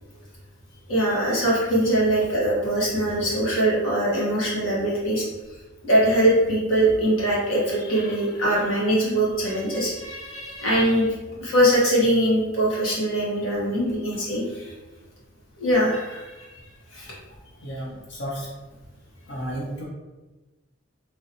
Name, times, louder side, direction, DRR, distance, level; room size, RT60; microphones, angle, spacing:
voice 1, 0.9-5.2 5.8-14.7 15.6-16.2 16.9-17.1, right 1 dB, 85° left, -6 dB, 1.2 m, -22 dB
voice 2, 17.6-18.5 19.3-19.8, equal, 60° left, -3 dB, 0.6 m, -32 dB
3.0 x 2.7 x 2.7 m, 1.2 s
head